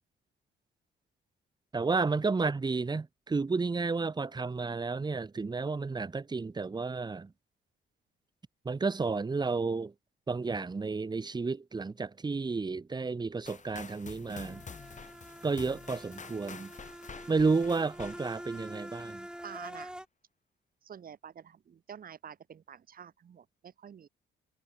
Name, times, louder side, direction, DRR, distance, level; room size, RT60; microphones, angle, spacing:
voice 1, 1.7-7.3 8.6-9.9 10.3-14.6 15.4-16.7 17.3-19.3, right 4 dB, 20° right, 1.1 m, -31 dB
sound 1, 13.5-19.3, left 5 dB, 40° left, 4.0 m, -49 dB
sound 2, 14.4-20.1, right 1 dB, 5° right, 3.9 m, -46 dB
voice 2, 19.4-19.9 20.8-24.1, right 8 dB, 45° right, 1.4 m, -48 dB
cardioid pair, 90°, 20 cm